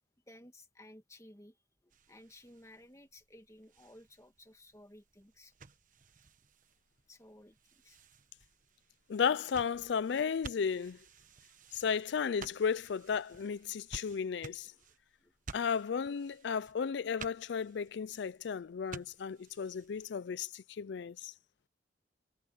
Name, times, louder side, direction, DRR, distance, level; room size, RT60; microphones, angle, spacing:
voice 1, 0.3-1.6 1.8-5.5 7.1-8.0 11.3-11.4 14.7-15.3, left 1 dB, 15° left, 1.8 m, -57 dB
sound 1, 1.9-20.1, right 4 dB, 45° right, 1.2 m, -54 dB
voice 2, 9.1-11.0 11.7-14.7 15.5-21.3, left 6 dB, 65° left, 0.4 m, -34 dB
head